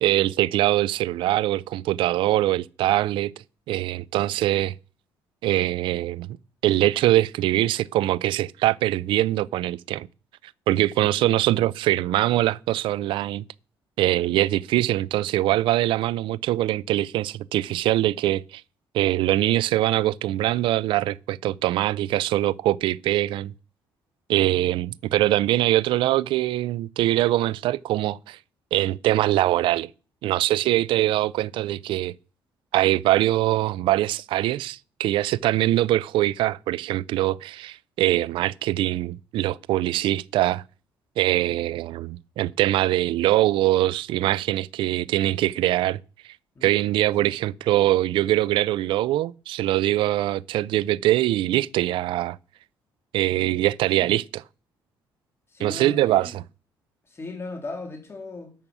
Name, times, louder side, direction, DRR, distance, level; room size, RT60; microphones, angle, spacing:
voice 1, 0.0-3.3 3.7-4.7 5.4-6.3 6.6-10.1 10.7-13.4 14.0-18.6 18.9-23.5 24.3-28.4 28.7-29.9 30.2-32.1 32.7-40.6 41.2-46.0 46.6-52.4 53.1-54.4 55.6-56.4, right 15 dB, 80° right, 0.4 m, -23 dB
voice 2, 55.5-56.4 57.0-58.5, left 3 dB, 30° left, 2.9 m, -38 dB
10.5 x 6.1 x 6.9 m
cardioid pair, 95°, 9 cm